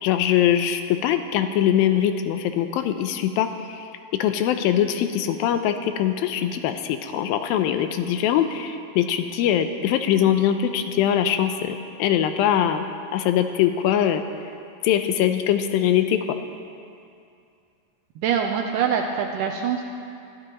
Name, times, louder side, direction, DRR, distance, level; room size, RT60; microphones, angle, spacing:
voice 1, 0.0-12.9 13.1-14.2 14.8-16.4, left 10 dB, 80° left, 8 dB, 2.3 m, -22 dB
voice 2, 18.2-19.8, right 7 dB, 80° right, 2 dB, 1.9 m, -24 dB
22.5 x 12.5 x 3.0 m, 2.5 s
omnidirectional pair, 4.4 m